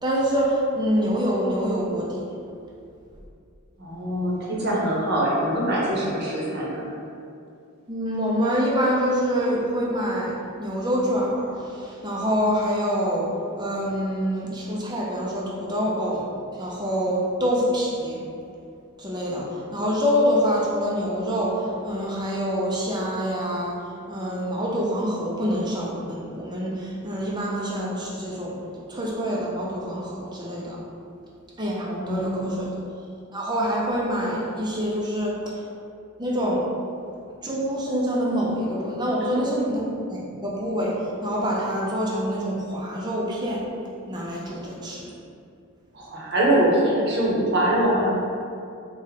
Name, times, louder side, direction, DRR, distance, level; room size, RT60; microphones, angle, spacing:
voice 1, 0.0-2.2 7.9-10.3 10.6-13.3 13.6-16.2 16.6-18.2 19.0-19.5 19.7-23.8 24.1-28.6 28.9-30.8 31.6-32.7 33.3-35.4 36.2-36.6 37.4-39.8 40.1-40.9 41.2-43.6 44.0-45.1, equal, 20° right, -4 dB, 0.6 m, -25 dB
voice 2, 3.8-6.9 32.0-32.7 39.2-39.3 45.9-48.2, right 1 dB, 50° right, -5 dB, 1.0 m, -23 dB
4.2 x 2.4 x 4.1 m, 2.5 s
head